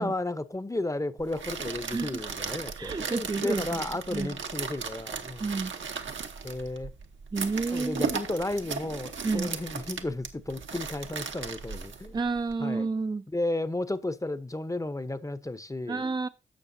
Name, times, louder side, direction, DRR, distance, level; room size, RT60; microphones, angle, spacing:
voice 1, 0.0-5.5 6.4-6.9 7.7-12.2 12.6-12.9 13.3-16.0, left 2 dB, 15° left, 0.8 m, -33 dB
sound 1, 1.2-12.5, right 5 dB, 75° right, 1.0 m, -37 dB
voice 2, 1.9-2.2 2.8-3.8 4.1-4.4 5.4-5.7 7.3-8.0 9.2-9.5 12.1-13.2 15.9-16.3, right 4 dB, 20° right, 0.4 m, -30 dB
11.5 x 6.8 x 2.7 m
supercardioid pair, 40°, 20 cm